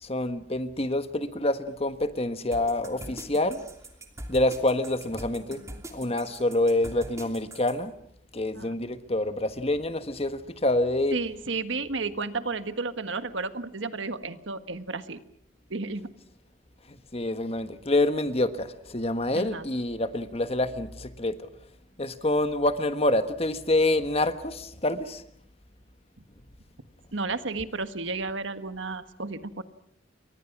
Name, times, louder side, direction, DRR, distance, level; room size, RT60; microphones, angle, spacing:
voice 1, 0.0-3.6 4.3-7.9 8.3-11.2 17.1-21.4 22.0-25.2, left 1 dB, 30° left, 10 dB, 1.4 m, -27 dB
sound 1, 2.5-7.8, right 1 dB, 15° right, 2.9 m, -42 dB
voice 2, 11.1-15.2 15.7-16.1 19.3-19.6 27.1-29.6, right 3 dB, 75° right, 11 dB, 1.6 m, -32 dB
30.0 x 24.0 x 6.1 m, 0.69 s
head